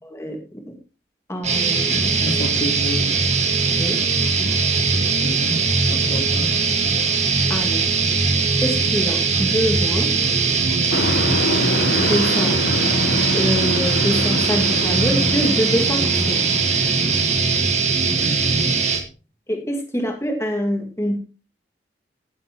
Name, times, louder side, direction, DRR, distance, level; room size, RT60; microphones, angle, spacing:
voice 1, 0.0-0.4 0.6-0.8 1.3-2.2 3.7-4.0 7.5-7.9 8.6-10.1 12.0-12.6 13.3-16.5 19.5-21.2, equal, 15° left, 2 dB, 2.1 m, -25 dB
sound 1, 1.4-19.0, right 4 dB, 40° right, 1.6 m, -20 dB
voice 2, 2.2-3.1 5.2-5.6 5.9-6.6 18.2-18.7, equal, 50° left, 2 dB, 2.4 m, -29 dB
Truck, 10.9-17.6, left 1 dB, 70° left, 1.1 m, -26 dB
16.5 x 7.3 x 3.0 m, 0.35 s
head